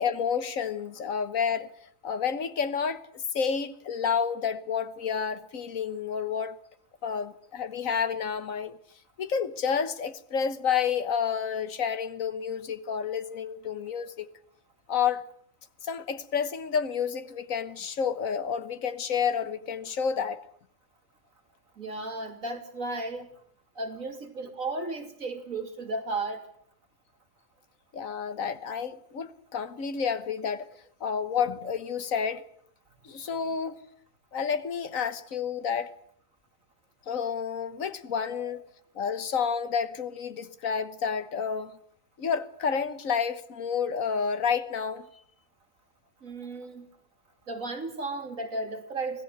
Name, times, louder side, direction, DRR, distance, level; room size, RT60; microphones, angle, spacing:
voice 1, 0.0-1.7 2.0-6.6 7.0-8.8 9.2-14.3 14.9-15.2 15.8-20.4 27.9-30.7 31.0-32.4 33.0-33.8 34.3-35.9 37.1-38.6 38.9-41.8 42.2-45.0, left 6 dB, 75° left, 1.6 m, -30 dB
voice 2, 21.8-23.3 23.8-26.4 38.3-38.5 46.2-46.9 47.5-49.2, right 2 dB, 75° right, 3.3 m, -34 dB
25.5 x 17.5 x 8.0 m
omnidirectional pair, 1.4 m